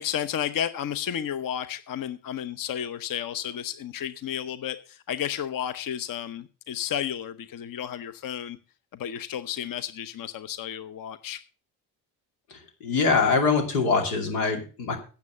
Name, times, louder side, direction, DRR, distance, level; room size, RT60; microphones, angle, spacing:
voice 1, 0.0-8.6 8.9-11.4, left 9 dB, 45° left, 0.9 m, -32 dB
voice 2, 12.5-15.0, left 4 dB, 90° left, 2.6 m, -24 dB
9.5 x 7.3 x 6.7 m
hypercardioid pair, 55°, 48 cm